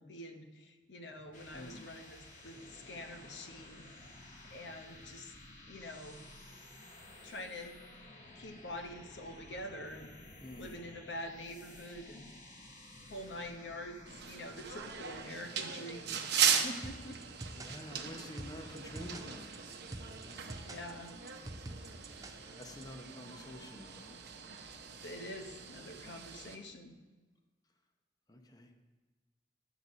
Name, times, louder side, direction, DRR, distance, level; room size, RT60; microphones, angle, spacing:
voice 1, 0.0-3.9 4.4-5.3 5.7-6.3 7.2-7.8 8.0-10.1 10.5-12.3 13.1-14.0 14.3-17.2 18.6-18.7 20.6-21.1 25.0-26.9, left 1 dB, 70° left, 5 dB, 0.9 m, -46 dB
sound 1, 1.0-15.6, left 1 dB, 45° left, 1.4 m, -54 dB
voice 2, 1.5-1.9 10.4-10.8 17.5-19.5 20.3-20.7 22.6-24.3 26.0-26.2 28.3-28.7, left 1 dB, 20° left, 5 dB, 0.7 m, -49 dB
sound 2, 14.1-26.6, right 7 dB, 65° right, 0.8 m, -38 dB
sound 3, 16.8-22.8, right 1 dB, 20° right, 0.5 m, -47 dB
9.6 x 4.0 x 6.1 m, 1.3 s
head